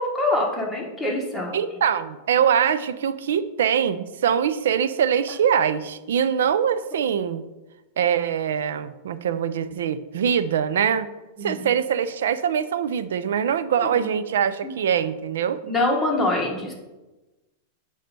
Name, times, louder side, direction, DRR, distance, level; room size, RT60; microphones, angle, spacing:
voice 1, 0.0-1.6 11.4-11.6 13.8-14.1 14.6-14.7 15.6-16.7, left 2 dB, 5° left, -3 dB, 1.4 m, -25 dB
voice 2, 1.5-7.4 8.0-11.1 11.4-15.6, right 8 dB, 90° right, 13 dB, 0.4 m, -23 dB
8.6 x 3.2 x 5.3 m, 1.1 s
supercardioid pair, 155°, 0 cm